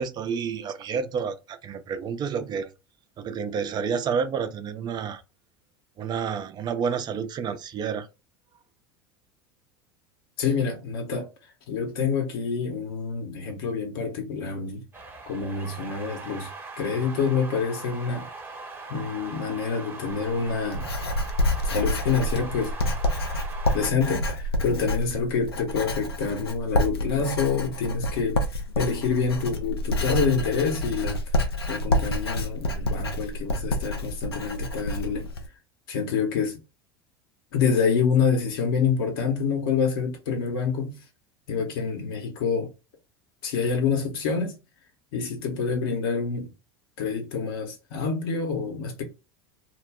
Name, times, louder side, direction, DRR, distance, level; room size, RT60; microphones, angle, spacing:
voice 1, 0.0-2.7 3.2-5.2 6.0-8.1, right 6 dB, 35° right, 0.5 m, -29 dB
voice 2, 10.4-11.3 11.7-14.8 15.3-16.5 16.8-18.3 18.9-20.9 21.7-22.7 23.7-35.3 35.9-36.6 37.5-41.0 41.5-42.7 43.4-44.6 45.1-46.5 47.0-49.0, left 5 dB, 70° left, 0.9 m, -27 dB
sound 1, 14.9-23.9, right 3 dB, 15° right, 0.9 m, -40 dB
Writing, 20.1-35.5, left 1 dB, 85° left, 0.5 m, -28 dB
2.2 x 2.1 x 3.4 m
hypercardioid pair, 80°, 13 cm